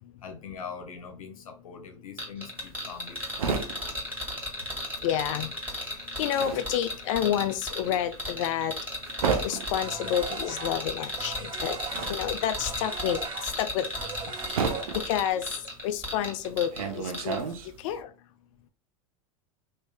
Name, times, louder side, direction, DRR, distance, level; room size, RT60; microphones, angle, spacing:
voice 1, 0.2-3.6, left 6 dB, 90° left, 0.8 m, -42 dB
sound 1, 2.2-16.8 17.1-17.4, left 1 dB, 10° right, 1.9 m, -35 dB
sound 2, 2.6-5.1 5.4-18.0, right 5 dB, 85° right, 0.7 m, -34 dB
voice 2, 5.0-5.5 6.2-8.8 9.4-11.8 12.1-13.9 15.1-15.5 15.8-17.4 17.8-18.1, left 10 dB, 65° left, 0.4 m, -29 dB
sound 3, 9.8-15.3, right 6 dB, 30° right, 0.6 m, -40 dB
3.2 x 2.7 x 3.4 m
hypercardioid pair, 95°, 18 cm